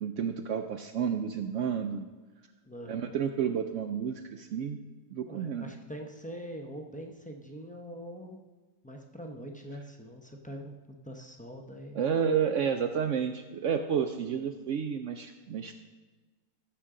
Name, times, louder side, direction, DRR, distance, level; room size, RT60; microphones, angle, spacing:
voice 1, 0.0-2.1 2.9-4.8 5.1-5.7 11.9-15.7, right 7 dB, 70° right, 6 dB, 0.7 m, -31 dB
voice 2, 2.6-3.1 5.3-8.5 8.8-10.8 11.0-12.0, equal, 10° left, 1 dB, 0.4 m, -43 dB
14.5 x 6.8 x 3.7 m, 1.3 s
omnidirectional pair, 1.7 m